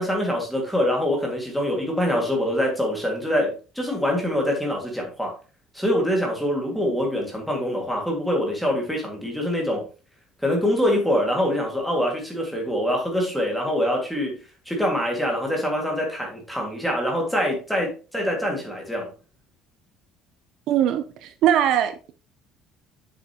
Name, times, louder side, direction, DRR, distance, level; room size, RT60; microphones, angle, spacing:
voice 1, 0.0-5.3 5.7-9.9 10.4-19.1, equal, ahead, 2.1 m, -24 dB
voice 2, 20.7-22.1, right 10 dB, 55° right, 0.6 m, -21 dB
7.7 x 7.2 x 2.9 m
cardioid pair, 175°, 0 cm